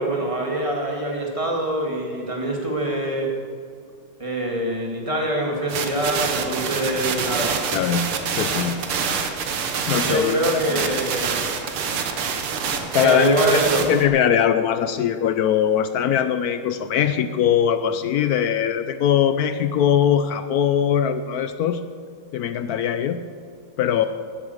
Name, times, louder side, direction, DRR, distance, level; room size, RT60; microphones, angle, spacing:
voice 1, 0.0-3.3 4.2-7.6 10.0-11.4 13.0-13.9, right 1 dB, 15° right, 0 dB, 2.3 m, -24 dB
sound 1, 5.7-14.0, right 6 dB, 90° right, 2.1 m, -26 dB
voice 2, 7.7-8.8 9.9-10.9 12.9-13.6 13.9-21.8 22.3-23.2 23.8-24.0, left 9 dB, 85° left, 10 dB, 0.8 m, -21 dB
13.0 x 10.0 x 8.0 m, 2.2 s
omnidirectional pair, 2.3 m